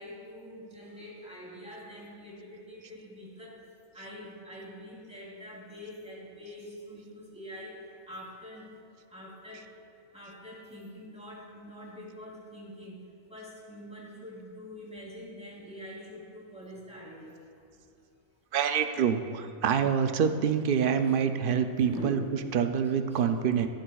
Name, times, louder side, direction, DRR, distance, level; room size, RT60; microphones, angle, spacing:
voice 1, 0.0-3.6 3.9-8.7 9.1-9.7 10.1-17.4 21.0-21.4 21.8-22.3 23.1-23.2 23.6-23.7, equal, 5° right, -5 dB, 2.5 m, -45 dB
voice 2, 18.5-23.7, right 7 dB, 65° right, 8 dB, 0.5 m, -26 dB
14.5 x 12.0 x 2.3 m, 2.3 s
omnidirectional pair, 1.4 m